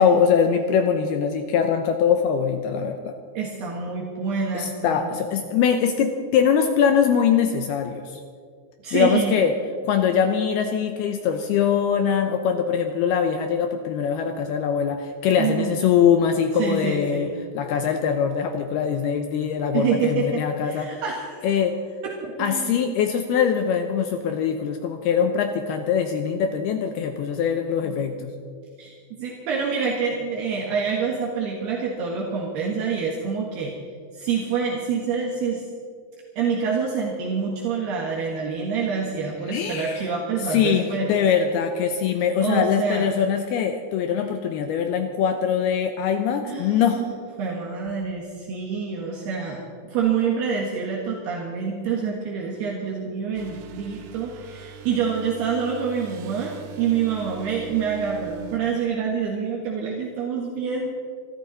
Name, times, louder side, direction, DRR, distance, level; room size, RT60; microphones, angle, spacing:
voice 1, 0.0-3.1 4.5-8.2 8.9-9.5 9.8-17.3 17.5-21.0 21.4-21.7 22.4-28.3 39.5-40.1 40.4-47.0, left 7 dB, 75° left, 6 dB, 2.5 m, -22 dB
voice 2, 3.4-5.2 8.8-9.4 15.4-15.7 16.6-17.3 19.7-21.5 22.0-22.1 22.4-22.8 27.8-28.0 28.8-33.7 34.1-35.7 36.4-41.1 42.4-43.1 44.1-44.2 46.5-47.1 47.4-60.9, right 6 dB, 70° right, -2 dB, 3.4 m, -27 dB
sound 1, 53.3-58.6, right 11 dB, 90° right, 3.5 m, -40 dB
25.5 x 13.5 x 4.1 m, 2.1 s
omnidirectional pair, 5.1 m